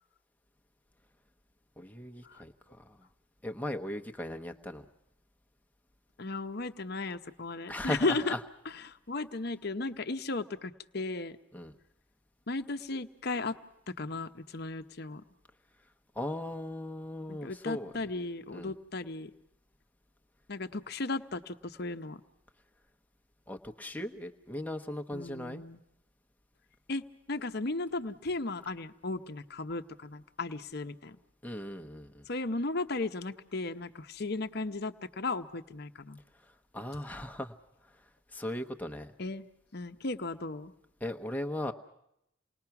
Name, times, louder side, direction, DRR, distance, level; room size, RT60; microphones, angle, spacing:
voice 1, 1.8-3.0 3.4-4.8 7.7-8.4 11.5-11.8 16.1-17.9 18.5-18.7 23.5-25.6 31.4-32.2 36.7-37.5 38.3-39.1 41.0-41.7, left 1 dB, 10° left, 5 dB, 1.0 m, -38 dB
voice 2, 6.2-8.3 8.9-11.4 12.5-13.6 14.0-15.2 17.3-19.3 20.5-22.2 25.1-25.8 26.9-31.2 32.3-36.2 39.2-39.5 39.7-40.7, left 3 dB, 50° left, 9 dB, 0.9 m, -35 dB
28.5 x 20.0 x 5.9 m, 0.82 s
head